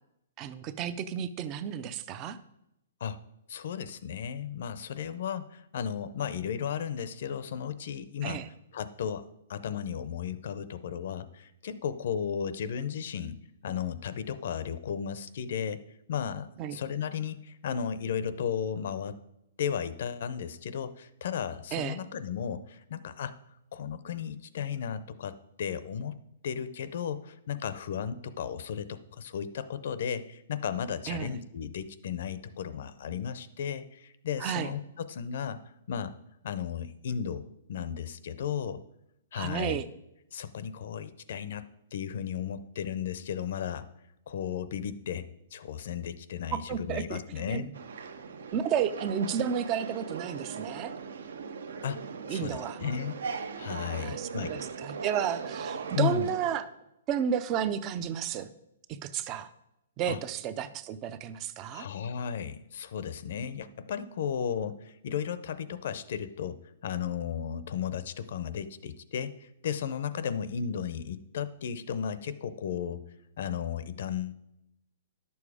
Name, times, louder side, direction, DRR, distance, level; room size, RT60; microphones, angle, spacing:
voice 1, 0.4-2.4 8.2-8.5 16.6-16.8 21.7-22.0 31.1-31.3 34.4-34.7 39.3-39.8 46.5-47.7 48.5-50.9 52.3-52.8 53.9-56.7 57.1-58.5 59.0-59.5 60.0-61.9, right 8 dB, 20° right, 14 dB, 0.4 m, -32 dB
voice 2, 3.5-8.4 8.7-13.4 13.6-15.8 16.1-19.2 19.6-23.3 23.7-26.2 26.4-35.6 35.9-36.1 36.4-37.4 37.7-38.8 39.3-39.8 40.3-41.7 41.9-43.9 44.3-47.7 51.8-52.0 52.3-53.2 53.6-54.5 55.9-56.3 60.1-60.2 61.7-66.6 66.8-73.0 73.4-74.3, left 8 dB, 50° left, 13 dB, 0.6 m, -34 dB
sound 1, 47.7-56.6, right 5 dB, 70° right, 0.9 m, -39 dB
11.0 x 7.0 x 4.9 m, 0.84 s
hypercardioid pair, 175°, 0 cm